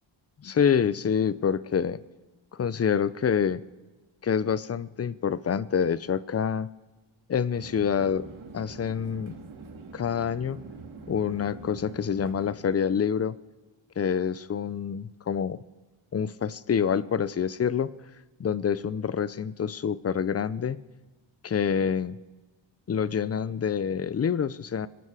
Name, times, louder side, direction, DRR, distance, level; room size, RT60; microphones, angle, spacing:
voice 1, 0.4-2.0 2.5-3.6 4.2-6.7 7.3-8.3 8.5-9.4 9.9-10.6 11.1-13.4 14.0-15.6 16.1-17.9 18.4-20.8 21.4-22.2 22.9-24.9, left 7 dB, 30° left, 18 dB, 0.5 m, -27 dB
sound 1, 7.5-12.5, right 3 dB, 75° right, 2.3 m, -44 dB
24.5 x 11.0 x 4.9 m, 1.3 s
wide cardioid pair, 125°, 48 cm